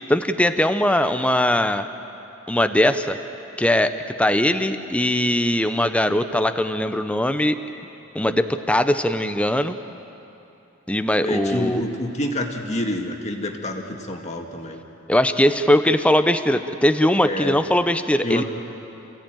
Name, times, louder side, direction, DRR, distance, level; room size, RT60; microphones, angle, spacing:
voice 1, 0.1-1.9 2.5-3.2 3.6-7.6 8.1-9.7 10.9-11.8 15.1-18.4, left 1 dB, 5° left, 9 dB, 0.7 m, -20 dB
voice 2, 11.2-14.8 17.2-17.6 18.2-18.4, left 1 dB, 35° left, 2 dB, 2.0 m, -27 dB
27.5 x 16.5 x 9.1 m, 2.9 s
head